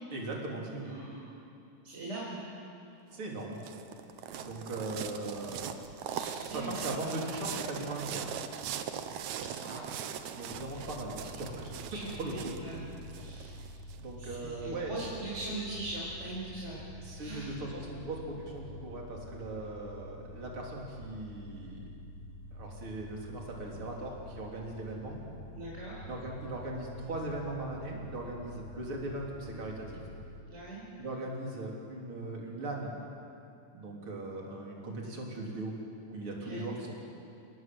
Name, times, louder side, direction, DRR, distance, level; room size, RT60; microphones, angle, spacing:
voice 1, 0.1-1.0 3.1-3.6 4.3-5.7 6.4-8.3 10.3-11.7 12.1-12.5 13.3-13.5 14.0-14.9 17.0-21.9 22.5-25.2 26.1-29.9 31.0-32.9 33.7-35.7 36.1-36.9, right 2 dB, 40° right, -1 dB, 4.3 m, -39 dB
voice 2, 0.8-1.4 1.8-2.4 6.1-7.3 9.4-9.9 11.9-13.6 14.2-16.8 17.2-17.5 25.5-26.0 30.5-30.8 36.5-36.7, right 2 dB, 20° right, -6 dB, 5.1 m, -41 dB
sound 1, 3.1-14.0, right 9 dB, 70° right, 2.1 m, -40 dB
sound 2, 10.5-30.4, left 1 dB, 85° left, 3.1 m, -48 dB
29.0 x 19.0 x 7.9 m, 2.6 s
omnidirectional pair, 3.8 m